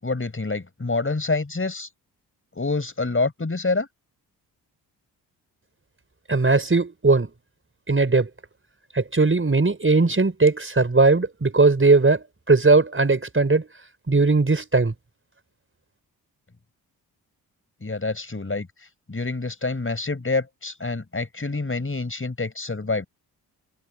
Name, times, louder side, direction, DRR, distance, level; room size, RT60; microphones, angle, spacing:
voice 1, 0.0-1.9 2.6-3.9 17.8-18.7 19.1-23.1, left 3 dB, 25° left, 6.9 m, -27 dB
voice 2, 6.3-7.3 7.9-8.3 8.9-13.7 14.1-14.9, right 3 dB, 25° right, 5.7 m, -19 dB
hypercardioid pair, 40°, 48 cm